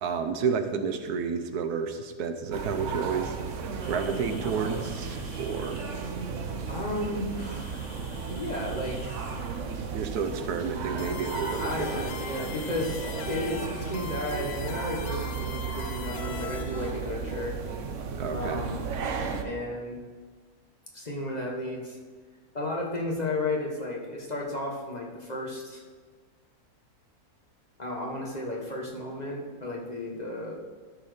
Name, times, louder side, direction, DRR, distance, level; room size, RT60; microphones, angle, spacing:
voice 1, 0.0-3.4 3.9-5.9 9.9-12.1 18.2-18.7, right 6 dB, 85° right, 7 dB, 1.3 m, -30 dB
sound 1, 2.5-19.4, right 5 dB, 60° right, 1.0 m, -34 dB
sound 2, 3.8-14.6, left 2 dB, 65° left, 1.9 m, -51 dB
voice 2, 6.7-8.0 8.3-9.2 11.6-17.6 18.3-18.8 19.4-20.0 20.9-22.0 22.5-25.8 27.8-30.6, left 1 dB, 30° left, -2 dB, 1.3 m, -33 dB
sound 3, 11.0-16.9, left 7 dB, 90° left, 1.1 m, -41 dB
13.0 x 4.3 x 5.0 m, 1.5 s
omnidirectional pair, 1.6 m